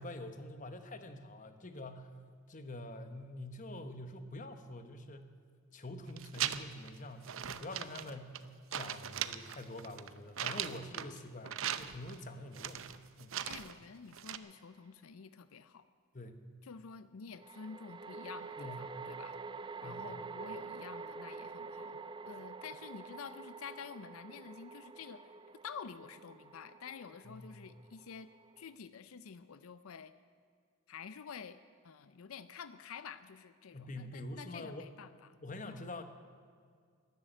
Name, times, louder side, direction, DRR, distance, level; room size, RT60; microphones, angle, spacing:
voice 1, 0.0-2.2 2.5-5.4 5.7-8.4 8.7-12.9 13.2-13.4 16.1-16.4 18.6-18.8 19.8-20.1 27.2-27.6 33.7-34.9 35.4-36.0, left 1 dB, 35° left, 9 dB, 1.1 m, -46 dB
sound 1, 6.1-6.9 7.2-8.5 8.7-11.2 11.4-12.2 12.5-13.8 14.1-14.4, right 10 dB, 65° right, 0.6 m, -39 dB
voice 2, 13.4-15.9 16.6-19.4 19.8-25.4 25.6-28.3 28.6-30.1 30.9-31.6 31.8-35.4 35.7-35.8, left 6 dB, 80° left, 13 dB, 0.5 m, -49 dB
sound 2, 14.4-14.5 17.4-28.8, right 4 dB, 20° right, 0.3 m, -47 dB
13.0 x 11.5 x 9.1 m, 2.1 s
head